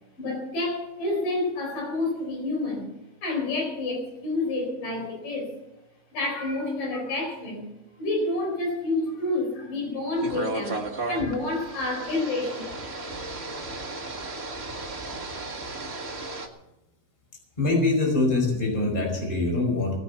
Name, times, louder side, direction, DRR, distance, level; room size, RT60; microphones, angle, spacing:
voice 1, 0.2-2.9 3.2-5.5 6.1-7.7 8.0-12.6, left 2 dB, 60° left, 1 dB, 6.0 m, -29 dB
sound 1, 10.2-16.5, right 2 dB, 35° right, 1.0 m, -34 dB
voice 2, 17.6-20.0, left 2 dB, 10° left, 1 dB, 4.8 m, -24 dB
19.5 x 9.8 x 7.0 m, 0.95 s
omnidirectional pair, 4.4 m